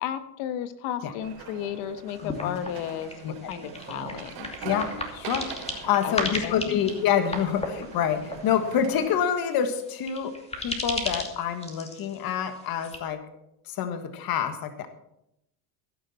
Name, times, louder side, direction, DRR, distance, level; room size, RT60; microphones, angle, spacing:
voice 1, 0.0-3.1 3.4-4.5 6.0-6.9, left 10 dB, 85° left, 11 dB, 1.4 m, -33 dB
sound 1, 1.2-9.2, right 5 dB, 80° right, 3.9 m, -42 dB
sound 2, 2.1-13.0, left 2 dB, 15° left, 2.6 m, -37 dB
voice 2, 2.2-2.6 3.2-3.3 4.6-13.2 13.7-14.9, left 8 dB, 55° left, 8 dB, 1.6 m, -27 dB
15.5 x 11.5 x 4.3 m, 0.80 s
cardioid pair, 125°, 43 cm